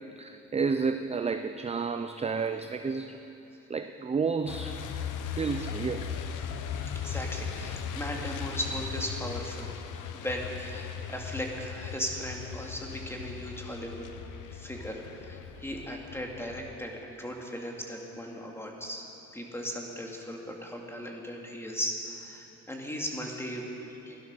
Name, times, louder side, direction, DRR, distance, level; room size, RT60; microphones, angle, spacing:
voice 1, 0.2-3.2 3.7-4.8 5.4-6.1, right 5 dB, 20° right, 8 dB, 0.5 m, -31 dB
Truck, 4.5-16.8, left 7 dB, 85° left, 0.9 m, -38 dB
voice 2, 7.0-9.7 10.1-14.1 14.5-19.0 19.3-23.7 24.1-24.2, equal, 10° left, 0 dB, 2.3 m, -37 dB
16.0 x 11.5 x 6.2 m, 3.0 s
cardioid pair, 90°, 30 cm